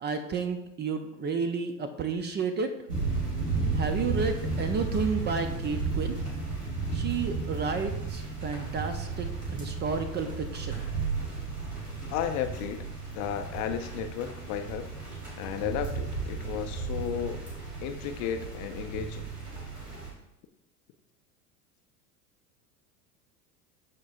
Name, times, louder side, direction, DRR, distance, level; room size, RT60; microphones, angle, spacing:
voice 1, 0.0-2.7 3.7-6.3 6.9-10.8, right 5 dB, 25° right, 8 dB, 0.5 m, -31 dB
sound 1, 2.9-20.1, right 4 dB, 85° right, 2.4 m, -34 dB
voice 2, 12.1-14.9 15.4-17.4 17.8-19.3, left 9 dB, 40° left, 8 dB, 0.5 m, -34 dB
12.0 x 4.4 x 2.5 m, 0.83 s
figure-of-eight pair, 80°, 46 cm